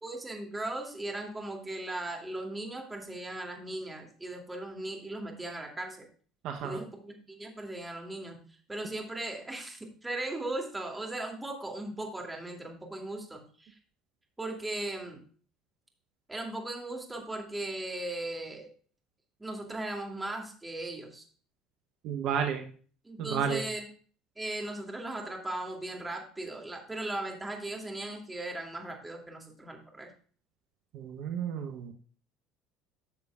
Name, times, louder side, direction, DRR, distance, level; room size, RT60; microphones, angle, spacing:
voice 1, 0.0-6.1 6.6-8.4 8.7-13.7 14.4-15.2 16.3-18.7 19.4-21.2 23.0-23.9 24.4-30.1, right 2 dB, 15° right, 1 dB, 2.5 m, -38 dB
voice 2, 6.4-6.8 22.0-22.6 23.2-23.6 30.9-31.9, right 7 dB, 65° right, 5 dB, 0.8 m, -32 dB
13.0 x 6.8 x 2.4 m, 0.42 s
hypercardioid pair, 65°, 0 cm